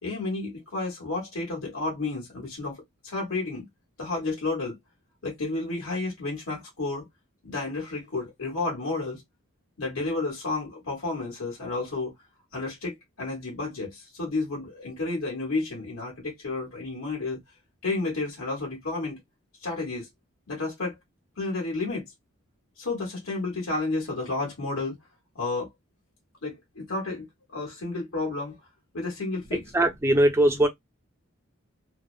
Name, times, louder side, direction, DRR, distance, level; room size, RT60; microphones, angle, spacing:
voice 1, 0.0-2.8 3.0-3.7 4.0-4.8 5.2-7.0 7.4-9.2 9.8-12.1 12.5-17.4 17.8-19.2 19.6-20.1 20.5-20.9 21.4-22.0 22.8-24.9 25.3-25.7 26.4-27.3 27.5-28.6 28.9-29.6 30.5-30.6, left 3 dB, 85° left, 1.1 m, -31 dB
voice 2, 29.7-30.7, right 1 dB, 10° right, 0.4 m, -20 dB
2.6 x 2.0 x 2.3 m
head